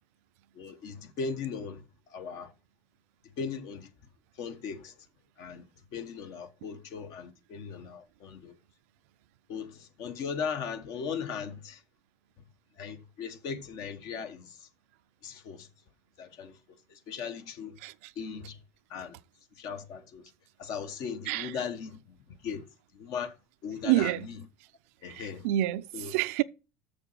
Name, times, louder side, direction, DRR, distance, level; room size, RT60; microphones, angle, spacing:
voice 1, 0.5-1.8 2.1-2.5 3.4-3.9 4.4-4.9 5.4-5.6 5.9-8.5 9.5-11.8 12.8-14.7 15.2-15.7 16.2-16.6 16.9-17.8 18.2-18.6 18.9-19.2 19.6-20.2 20.6-22.7 22.9-23.3 23.6-24.3 25.0-25.5 25.9-26.1, left 6 dB, 60° left, 1.3 m, -38 dB
voice 2, 17.8-18.1 21.3-21.5 23.8-24.3 25.1-26.4, right 15 dB, 90° right, 0.5 m, -28 dB
7.0 x 6.8 x 5.8 m
cardioid pair, 130°, 7 cm